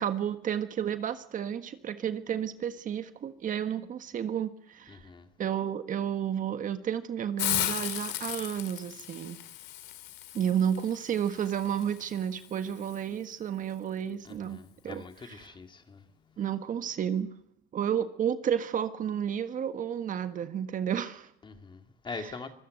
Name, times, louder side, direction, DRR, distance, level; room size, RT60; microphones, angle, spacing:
voice 1, 0.0-5.0 5.4-9.4 10.3-14.6 14.8-15.5 16.4-17.3 17.7-21.3 22.1-22.3, right 9 dB, 50° right, 1.5 m, -31 dB
voice 2, 4.9-5.3 14.2-16.0 21.4-22.5, left 4 dB, 30° left, 2.4 m, -43 dB
Hiss, 7.4-13.0, left 14 dB, 85° left, 2.2 m, -36 dB
25.0 x 16.0 x 8.0 m
cardioid pair, 110°, 17 cm